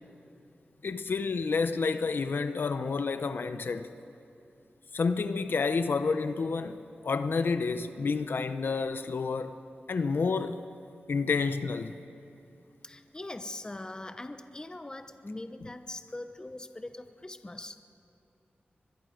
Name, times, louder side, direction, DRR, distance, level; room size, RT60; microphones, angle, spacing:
voice 1, 0.8-3.9 4.9-6.8 7.0-9.6 9.9-10.6 11.1-12.0, left 4 dB, 70° left, 0.8 m, -29 dB
voice 2, 12.8-17.8, left 2 dB, 20° left, 0.9 m, -41 dB
24.0 x 21.5 x 5.2 m
wide cardioid pair, 120°, 4 cm